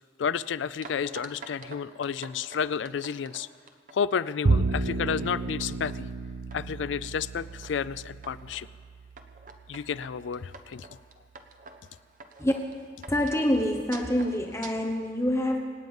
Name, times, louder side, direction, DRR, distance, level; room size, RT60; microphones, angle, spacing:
voice 1, 0.2-3.5 3.9-6.1 6.5-8.7 9.7-10.9, left 7 dB, 75° left, 17 dB, 0.4 m, -31 dB
sound 1, 0.8-4.3 4.7-5.1 5.5-6.0 6.5-6.9 7.4-7.8 8.2-8.7 9.2-14.7, right 3 dB, 50° right, 1.1 m, -47 dB
Bowed string instrument, 4.4-10.9, right 3 dB, 65° right, 0.7 m, -32 dB
voice 2, 13.1-15.6, left 1 dB, 15° left, 1 dB, 1.0 m, -26 dB
26.5 x 9.2 x 5.3 m, 2.2 s
head